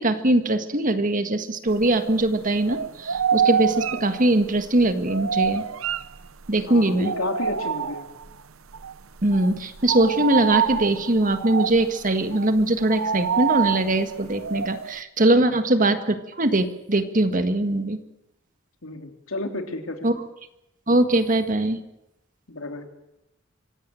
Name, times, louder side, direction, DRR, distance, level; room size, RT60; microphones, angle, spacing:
voice 1, 0.0-5.6 6.5-7.1 9.2-18.0 20.0-20.1 20.9-21.8, right 1 dB, 40° right, 9 dB, 1.7 m, -21 dB
sound 1, 1.7-2.4 2.7-6.6 7.0-8.3 8.7-8.9 9.2-15.0, right 7 dB, 80° right, 0.8 m, -27 dB
voice 2, 6.7-8.1 15.3-15.5 18.8-20.1 22.5-22.9, left 2 dB, 85° left, 5 dB, 3.1 m, -32 dB
25.0 x 16.5 x 7.7 m, 0.87 s
head